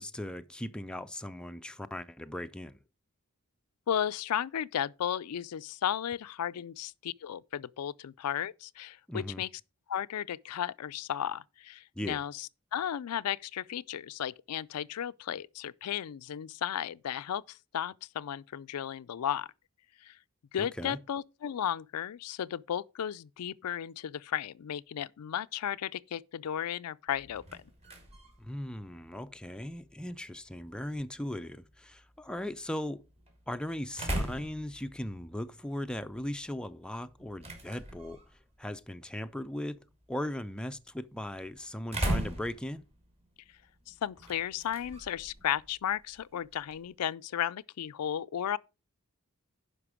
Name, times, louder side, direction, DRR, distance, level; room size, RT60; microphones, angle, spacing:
voice 1, 0.0-2.8 9.1-9.4 12.0-12.2 20.6-21.0 28.4-33.0 33.5-38.3 38.6-42.9, left 1 dB, 5° left, 0.4 m, -38 dB
voice 2, 3.9-9.5 9.9-19.5 20.0-20.2 20.5-27.4 43.9-48.6, left 9 dB, 90° left, 0.4 m, -34 dB
sound 1, 27.1-46.9, right 1 dB, 30° right, 3.0 m, -42 dB
11.0 x 5.2 x 4.9 m
head